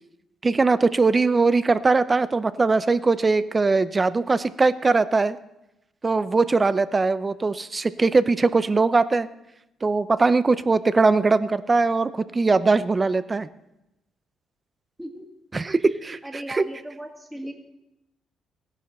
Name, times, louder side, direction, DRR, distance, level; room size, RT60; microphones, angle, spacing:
voice 1, 0.4-5.4 6.0-9.3 9.8-13.5 15.5-16.2 16.5-16.6, right 3 dB, 25° right, 14 dB, 0.5 m, -21 dB
voice 2, 16.2-17.5, equal, 5° right, 0 dB, 2.1 m, -37 dB
15.5 x 10.5 x 4.3 m, 0.91 s
cardioid pair, 90°, 0 cm